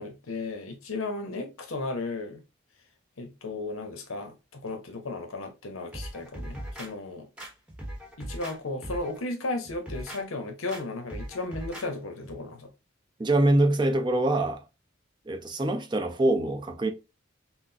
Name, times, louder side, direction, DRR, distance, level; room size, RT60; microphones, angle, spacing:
voice 1, 0.0-2.4 3.2-7.3 8.2-12.7, left 2 dB, 85° left, 0.9 m, -35 dB
sound 1, 5.9-6.9 7.4-8.6 8.8-9.2 9.6-10.2 10.7-10.8 11.1-11.9 12.2-12.3, equal, 5° right, 0.9 m, -39 dB
voice 2, 13.2-14.6 15.3-16.9, right 1 dB, 20° right, 0.5 m, -24 dB
5.8 x 2.0 x 2.7 m
head